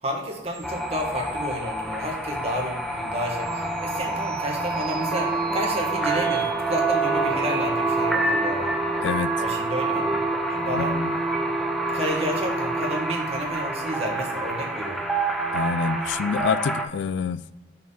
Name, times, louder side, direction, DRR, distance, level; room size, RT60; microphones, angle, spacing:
voice 1, 0.0-8.8 9.4-10.1 10.5-11.0 11.9-15.1, equal, 35° right, 1.5 m, -31 dB
sound 1, 0.5-10.1 10.5-11.9 13.7-14.9, right 8 dB, 55° right, 0.8 m, -45 dB
sound 2, 0.6-16.8, right 2 dB, ahead, 0.5 m, -27 dB
voice 2, 9.0-9.4 10.7-11.1 15.5-17.5, left 6 dB, 80° left, 0.3 m, -27 dB
5.8 x 4.5 x 5.6 m
head